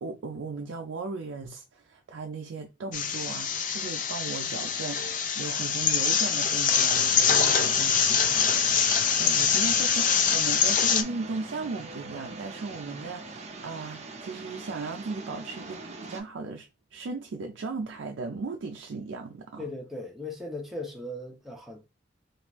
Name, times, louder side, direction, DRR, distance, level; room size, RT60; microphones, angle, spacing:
voice 1, 0.0-8.6 9.2-15.8 16.1-19.7, right 4 dB, 85° right, 0.4 m, -37 dB
sound 1, 2.9-11.0, left 7 dB, 45° left, 0.4 m, -24 dB
sound 2, 6.9-16.2, right 3 dB, 40° right, 0.6 m, -42 dB
voice 2, 19.6-21.8, left 2 dB, ahead, 0.8 m, -38 dB
3.2 x 2.5 x 3.0 m
head